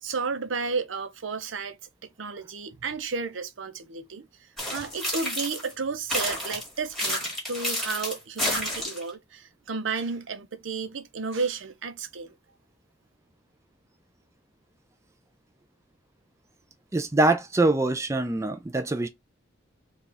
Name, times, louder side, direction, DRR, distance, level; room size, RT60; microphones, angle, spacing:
voice 1, 0.0-1.8 2.0-4.3 4.7-7.2 7.5-12.3, right 4 dB, 80° right, 0.7 m, -32 dB
sound 1, 4.6-5.7 6.1-9.1, equal, ahead, 2.1 m, -30 dB
voice 2, 16.9-19.1, right 2 dB, 15° right, 0.4 m, -24 dB
4.7 x 2.4 x 3.3 m
head